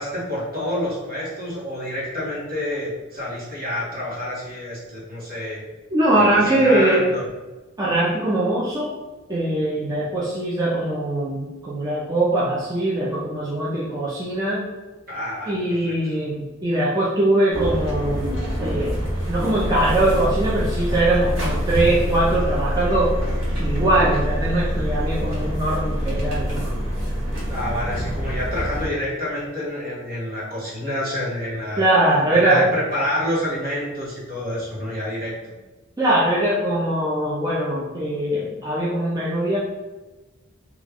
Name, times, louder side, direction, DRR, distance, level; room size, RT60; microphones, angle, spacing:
voice 1, 0.0-5.6 6.1-7.2 15.1-16.1 27.5-31.9 32.3-35.3, left 1 dB, 50° right, -7 dB, 1.4 m, -28 dB
voice 2, 5.9-7.1 7.8-9.0 9.3-14.7 15.5-19.0 19.3-23.2 23.6-26.7 31.8-32.7 36.0-39.6, right 1 dB, 20° right, -7 dB, 0.5 m, -21 dB
sound 1, 17.5-28.9, equal, 70° right, 1.1 m, -25 dB
3.1 x 2.3 x 3.5 m, 1.2 s
head